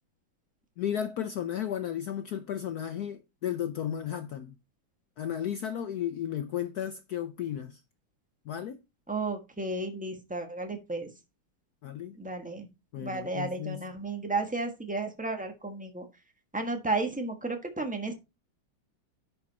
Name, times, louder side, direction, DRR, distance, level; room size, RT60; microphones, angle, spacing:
voice 1, 0.8-4.5 5.2-7.8 8.5-8.8 11.8-12.2 12.9-13.9, left 10 dB, 75° left, 0.9 m, -34 dB
voice 2, 9.1-11.1 12.2-12.7 13.0-16.0 16.5-18.1, right 3 dB, 5° right, 1.2 m, -33 dB
10.5 x 5.2 x 4.1 m
omnidirectional pair, 2.3 m